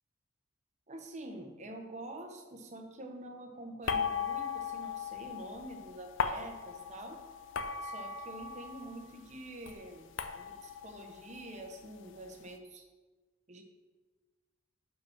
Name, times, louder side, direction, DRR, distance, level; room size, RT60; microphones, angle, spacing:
voice 1, 0.9-7.2 7.8-12.8 13.5-13.6, right 1 dB, 35° right, 4 dB, 0.8 m, -46 dB
sound 1, 3.9-9.1 9.4-12.3, left 6 dB, 70° left, 0.5 m, -38 dB
5.9 x 5.3 x 5.8 m, 1.3 s
head